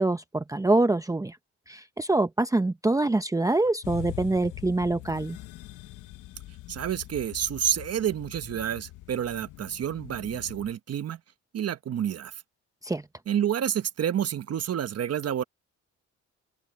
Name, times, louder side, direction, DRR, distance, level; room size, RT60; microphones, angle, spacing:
voice 1, 0.0-1.4 1.7-5.4 12.8-13.0, right 2 dB, 10° right, 0.8 m, -25 dB
sound 1, 3.8-10.7, left 16 dB, 85° left, 1.0 m, -43 dB
voice 2, 6.7-11.2 11.5-12.3 13.3-15.4, right 9 dB, 55° right, 1.2 m, -29 dB
open air
cardioid pair, 90°, 30 cm